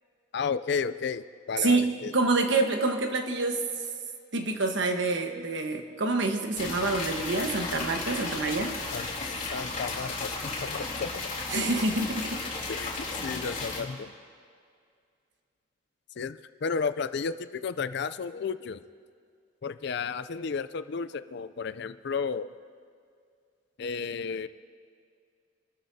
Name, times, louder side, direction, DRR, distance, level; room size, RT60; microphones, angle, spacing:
voice 1, 0.3-2.1 8.9-9.1 9.5-11.2 12.7-13.0 13.2-14.1 16.2-18.8 19.6-22.5 23.8-24.5, left 5 dB, 55° left, 13 dB, 0.4 m, -33 dB
voice 2, 1.6-3.6 4.3-8.7 11.5-12.4, right 3 dB, 65° right, 4 dB, 1.3 m, -27 dB
sound 1, 6.6-13.8, left 3 dB, 35° left, 3.0 m, -34 dB
26.5 x 13.0 x 2.8 m, 2.2 s
head